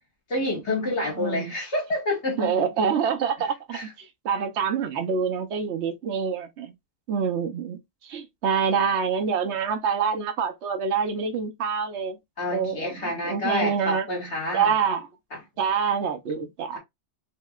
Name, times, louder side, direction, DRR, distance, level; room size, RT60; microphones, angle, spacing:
voice 1, 0.3-2.6 3.7-3.9 12.4-14.7, left 1 dB, 65° left, 2.2 m, -28 dB
voice 2, 1.2-1.5 2.4-6.7 7.1-12.2 12.5-14.1 14.5-15.1 15.6-16.8, right 6 dB, 65° right, 1.1 m, -26 dB
5.5 x 3.1 x 2.4 m
omnidirectional pair, 1.3 m